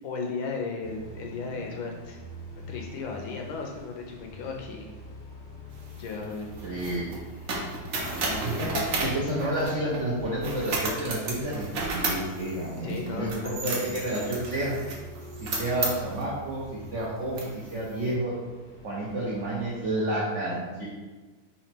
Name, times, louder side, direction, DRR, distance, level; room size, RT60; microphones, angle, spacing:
voice 1, 0.0-2.2 2.7-4.9 6.0-7.1 8.1-9.2 12.8-14.0, left 4 dB, 75° left, 2 dB, 1.3 m, -36 dB
sound 1, 0.8-19.9, right 1 dB, 35° left, 0.7 m, -44 dB
sound 2, 5.7-10.0 10.4-16.3 16.8-17.0 17.3-18.0, right 2 dB, 60° right, 1.0 m, -33 dB
voice 2, 6.6-7.0 8.4-8.7 9.0-14.8 15.4-18.3 18.8-20.9, right 1 dB, 80° right, -5 dB, 0.6 m, -30 dB
4.0 x 2.9 x 4.4 m, 1.3 s
omnidirectional pair, 2.4 m